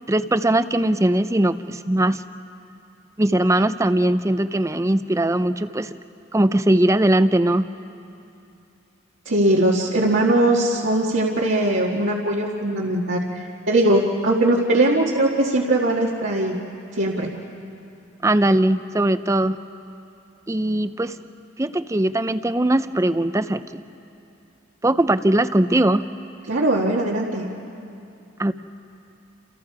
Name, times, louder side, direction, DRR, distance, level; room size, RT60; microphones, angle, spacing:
voice 1, 0.1-2.2 3.2-6.0 6.3-7.7 18.2-19.6 20.5-21.2 21.6-23.8 24.8-26.0 28.4-28.5, right 1 dB, 15° right, 12 dB, 0.5 m, -20 dB
voice 2, 9.3-16.6 16.9-17.3 26.5-27.5, right 1 dB, 75° right, -4 dB, 1.8 m, -20 dB
30.0 x 28.5 x 4.8 m, 2.7 s
head